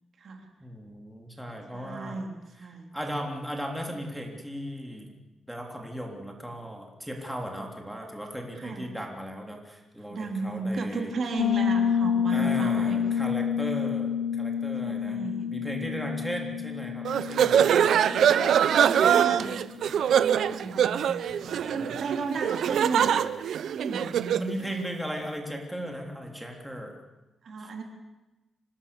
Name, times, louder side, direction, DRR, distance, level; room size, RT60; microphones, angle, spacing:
voice 1, 0.6-2.3 2.6-5.2 5.5-11.1 12.3-15.2 15.5-17.7 21.3-22.0 24.4-27.0 27.6-27.8, equal, ahead, 1 dB, 3.3 m, -37 dB
voice 2, 1.7-2.9 8.6-8.8 10.1-13.1 14.8-15.5 18.8-19.5 20.0-21.1 21.6-23.2 23.6-24.4 27.4-27.8, right 4 dB, 55° right, 3 dB, 3.6 m, -34 dB
Piano, 11.4-19.9, left 8 dB, 65° left, 1.4 m, -29 dB
sound 1, 17.0-24.5, right 9 dB, 75° right, 0.7 m, -23 dB
25.5 x 19.5 x 7.0 m, 1.1 s
wide cardioid pair, 135°, 0 cm